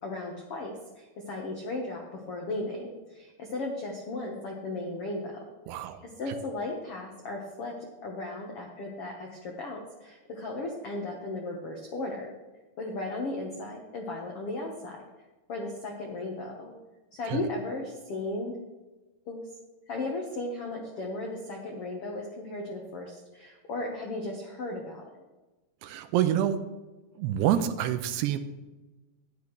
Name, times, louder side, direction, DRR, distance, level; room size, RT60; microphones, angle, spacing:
voice 1, 0.0-5.4 5.7-7.7 8.0-12.3 12.8-15.0 15.5-16.7 17.1-18.6 19.3-19.4 19.9-25.0, left 2 dB, 80° left, 0 dB, 1.3 m, -36 dB
voice 2, 5.7-6.0 6.3-6.4 17.3-17.4 25.8-26.6 27.2-28.4, right 11 dB, 90° right, 9 dB, 2.7 m, -27 dB
12.0 x 10.5 x 3.2 m, 1.2 s
omnidirectional pair, 4.7 m